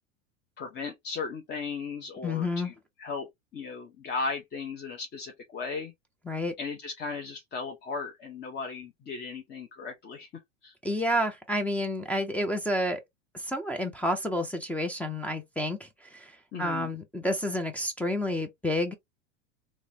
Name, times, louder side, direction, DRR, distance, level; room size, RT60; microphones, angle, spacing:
voice 1, 0.6-2.7 3.0-3.3 3.5-5.9 6.6-10.3 10.6-10.7 16.5-16.9, left 4 dB, 30° left, 0.7 m, -36 dB
voice 2, 2.2-2.7 6.3-6.5 10.8-13.0 13.3-16.3 16.6-18.9, left 1 dB, 5° left, 0.3 m, -30 dB
3.1 x 2.0 x 2.6 m
hypercardioid pair, 100°, 36 cm